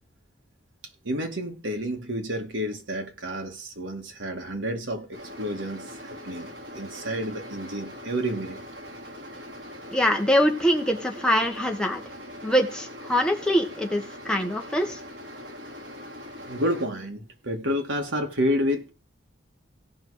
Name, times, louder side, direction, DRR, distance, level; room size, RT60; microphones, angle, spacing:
voice 1, 1.0-8.6 16.4-18.9, equal, 90° right, 2.2 m, -30 dB
sound 1, 5.1-16.9, equal, 65° right, 5.7 m, -41 dB
voice 2, 9.9-12.0 12.4-15.0, equal, 5° left, 1.6 m, -23 dB
17.0 x 5.6 x 4.9 m
head